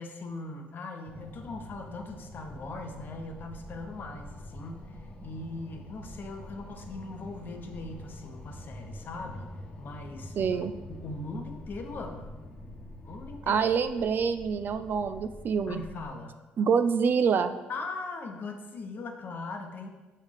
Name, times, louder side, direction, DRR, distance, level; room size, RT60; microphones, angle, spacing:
voice 1, 0.0-9.5 9.8-12.3 13.0-13.6 15.7-16.4 17.7-19.9, left 3 dB, 50° left, 5 dB, 0.9 m, -40 dB
sound 1, 1.1-16.1, left 1 dB, 25° left, 1.1 m, -45 dB
voice 2, 10.4-10.7 13.5-15.8 16.6-17.6, right 6 dB, 50° right, 11 dB, 0.4 m, -26 dB
5.6 x 5.3 x 3.5 m, 1.2 s
supercardioid pair, 65°, 4 cm